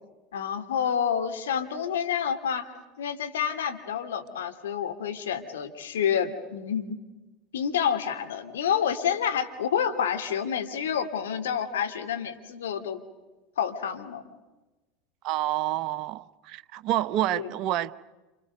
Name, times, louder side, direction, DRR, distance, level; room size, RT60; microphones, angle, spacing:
voice 1, 0.3-2.7 3.0-7.0 7.5-13.0 13.6-14.2 17.3-17.5, left 8 dB, 70° left, 6 dB, 2.6 m, -28 dB
voice 2, 15.2-17.9, right 13 dB, 50° right, 13 dB, 1.0 m, -28 dB
30.0 x 29.5 x 5.3 m, 1.1 s
figure-of-eight pair, 80°, 0 cm